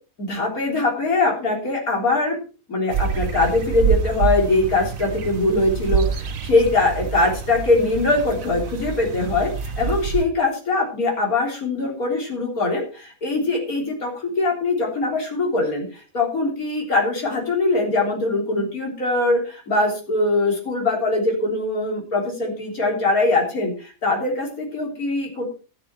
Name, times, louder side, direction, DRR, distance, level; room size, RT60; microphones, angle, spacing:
voice 1, 0.2-2.4 2.7-25.4, left 2 dB, 85° left, 0 dB, 4.0 m, -22 dB
sound 1, 2.9-10.2, right 6 dB, 70° right, 1.4 m, -26 dB
12.5 x 10.5 x 4.3 m, 0.34 s
omnidirectional pair, 1.5 m